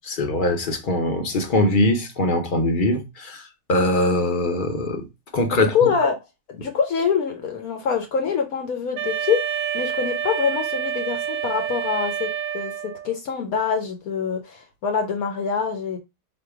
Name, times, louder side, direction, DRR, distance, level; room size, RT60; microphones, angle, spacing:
voice 1, 0.1-3.4 3.7-5.0 5.3-5.7, left 1 dB, 45° left, 0.8 m, -22 dB
voice 2, 5.5-6.2 6.5-12.3 12.5-12.7 13.0-16.0, left 6 dB, 70° left, 1.2 m, -25 dB
Wind instrument woodwind instrument, 9.0-13.2, right 8 dB, 70° right, 0.9 m, -28 dB
3.9 x 2.8 x 4.7 m
omnidirectional pair, 1.6 m